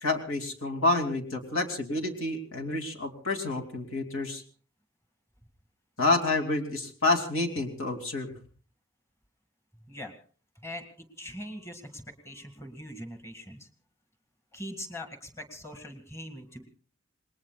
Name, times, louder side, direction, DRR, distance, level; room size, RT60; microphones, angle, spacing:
voice 1, 0.0-4.4 6.0-8.3, left 2 dB, 80° left, 3 dB, 3.0 m, -28 dB
voice 2, 10.6-13.7 14.5-16.6, left 1 dB, 15° left, 6 dB, 2.1 m, -42 dB
28.0 x 20.5 x 2.4 m, 0.41 s
head